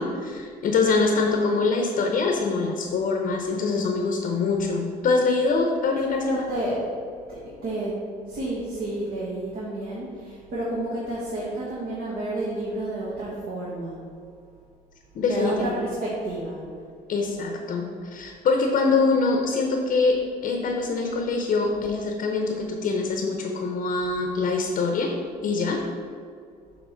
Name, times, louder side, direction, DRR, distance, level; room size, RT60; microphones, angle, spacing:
voice 1, 0.0-6.2 15.1-15.8 17.1-25.1 25.4-25.8, left 4 dB, 55° left, 2 dB, 0.8 m, -24 dB
voice 2, 6.0-6.8 7.3-8.0 8.3-14.0 15.3-16.6, right 1 dB, 60° right, -7 dB, 1.5 m, -30 dB
7.2 x 3.2 x 5.1 m, 2.2 s
cardioid pair, 110°, 17 cm